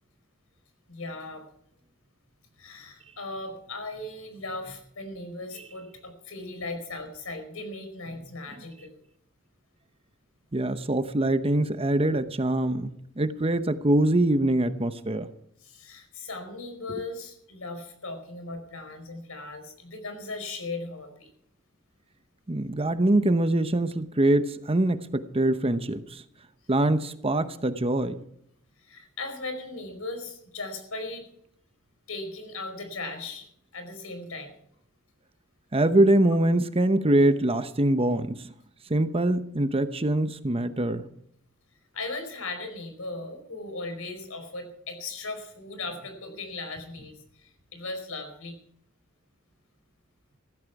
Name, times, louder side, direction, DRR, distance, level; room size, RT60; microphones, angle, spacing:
voice 1, 0.9-1.4 2.6-9.0 15.6-21.3 28.8-31.3 32.1-34.5 41.9-48.6, left 2 dB, 75° left, 7 dB, 4.9 m, -38 dB
voice 2, 10.5-15.3 22.5-26.2 26.7-28.2 35.7-38.5 38.9-41.1, right 1 dB, 25° right, 10 dB, 0.9 m, -24 dB
15.5 x 14.5 x 4.8 m, 0.69 s
head